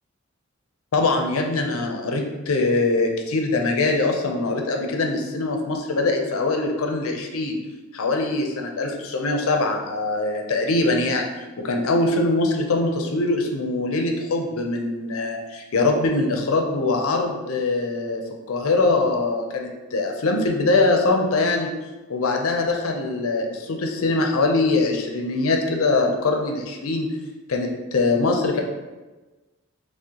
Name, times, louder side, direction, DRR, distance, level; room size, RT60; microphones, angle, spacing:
voice 1, 0.9-7.6 7.9-11.3 11.6-18.2 18.5-21.7 22.1-27.1 27.5-28.6, left 3 dB, 80° left, 2 dB, 0.5 m, -22 dB
6.0 x 2.1 x 2.9 m, 1.2 s
head